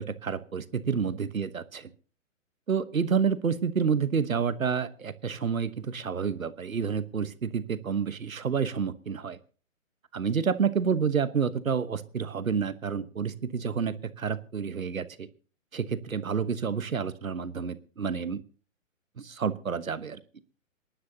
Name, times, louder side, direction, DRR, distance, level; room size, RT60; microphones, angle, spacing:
voice 1, 0.0-1.9 2.7-9.4 10.1-15.3 15.7-18.4 19.2-20.2, right 6 dB, 85° right, 15 dB, 1.2 m, -29 dB
27.0 x 11.5 x 2.8 m, 0.37 s
figure-of-eight pair, 135°, 40 cm